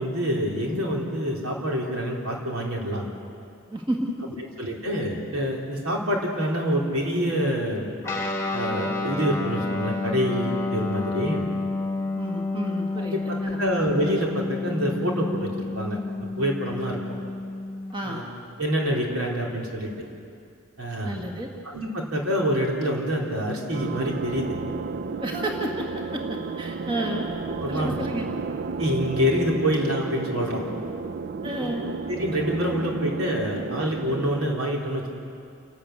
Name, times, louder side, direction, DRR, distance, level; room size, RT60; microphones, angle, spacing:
voice 1, 0.0-3.1 4.6-7.9 8.5-11.4 13.0-15.5 15.7-16.0 16.4-17.0 18.0-18.2 18.6-19.9 20.8-21.2 21.6-24.5 27.6-28.0 28.8-30.6 31.6-31.7 32.1-35.1, equal, 85° right, -2 dB, 3.8 m, -26 dB
voice 2, 3.7-4.4 12.2-13.6 17.9-18.2 21.0-21.5 25.1-27.3 27.7-28.3 31.4-31.9, right 1 dB, 25° right, 0 dB, 1.8 m, -31 dB
Guitar, 8.0-17.9, left 3 dB, 15° left, 1.7 m, -30 dB
sound 1, 23.7-34.5, right 4 dB, 50° right, 0.4 m, -33 dB
28.0 x 12.5 x 8.3 m, 2.5 s
head